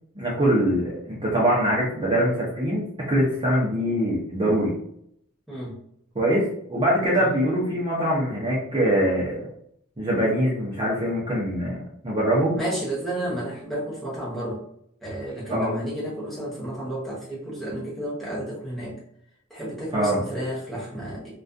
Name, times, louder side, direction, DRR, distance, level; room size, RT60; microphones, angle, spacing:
voice 1, 0.2-4.7 6.2-9.4 10.0-11.8 12.0-12.6 15.5-15.8 19.9-20.2, equal, 25° right, -6 dB, 0.5 m, -23 dB
voice 2, 12.6-14.6 15.0-19.0 19.5-21.4, right 1 dB, ahead, -7 dB, 0.8 m, -31 dB
2.3 x 2.2 x 2.5 m, 0.71 s
head